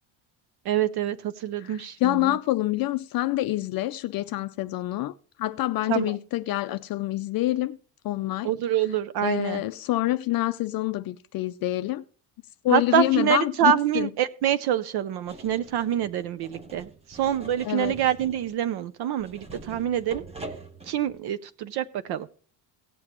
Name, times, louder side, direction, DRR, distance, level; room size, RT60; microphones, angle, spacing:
voice 1, 0.7-2.3 5.9-6.1 8.4-9.6 12.7-20.2 20.9-22.3, right 10 dB, 55° right, 0.6 m, -26 dB
voice 2, 1.6-7.8 8.0-8.5 9.2-12.0 12.6-14.1 17.7-18.0, left 16 dB, 50° left, 0.5 m, -26 dB
sound 1, 15.2-21.2, right 2 dB, 15° right, 0.9 m, -44 dB
17.5 x 7.8 x 3.0 m
cardioid pair, 165°, 46 cm